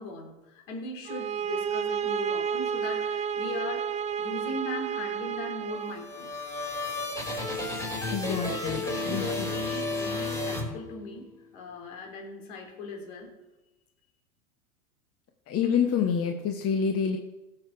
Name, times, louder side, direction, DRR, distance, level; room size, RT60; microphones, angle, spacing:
voice 1, 0.0-3.9 4.2-6.3 8.3-13.3, left 2 dB, 60° left, 2 dB, 3.7 m, -39 dB
sound 1, 1.1-6.0, right 7 dB, 15° right, 0.5 m, -31 dB
sound 2, 5.7-11.3, left 2 dB, 10° left, 5.0 m, -33 dB
voice 2, 8.1-8.8 9.1-9.2 15.5-17.2, left 7 dB, 35° left, 5 dB, 1.2 m, -27 dB
17.5 x 7.5 x 4.8 m, 1.0 s
hypercardioid pair, 95°, 42 cm